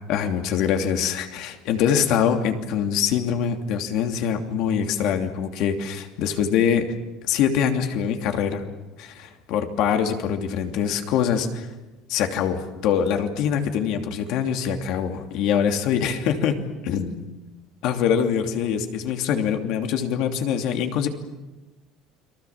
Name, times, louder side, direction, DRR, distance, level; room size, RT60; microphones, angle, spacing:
voice 1, 0.1-6.9 7.3-8.6 9.0-11.7 12.1-16.6 16.8-17.2 17.8-21.1, left 8 dB, 60° left, 5 dB, 2.9 m, -24 dB
30.0 x 23.5 x 7.3 m, 1.1 s
cardioid pair, 160°, 0 cm